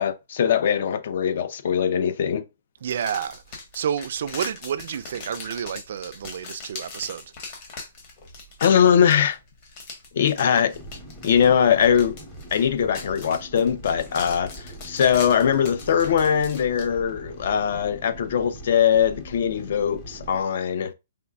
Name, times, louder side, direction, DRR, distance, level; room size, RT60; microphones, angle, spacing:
voice 1, 0.0-2.4 8.6-9.4 10.1-10.8 11.2-12.2 12.5-14.5 14.8-20.9, left 8 dB, 50° left, 0.6 m, -21 dB
sound 1, 2.8-16.9, left 3 dB, 30° left, 1.2 m, -41 dB
voice 2, 2.8-7.2, right 8 dB, 50° right, 0.4 m, -30 dB
sound 2, 10.7-20.4, right 1 dB, 10° left, 0.8 m, -42 dB
5.1 x 3.2 x 2.3 m
hypercardioid pair, 175°, 0 cm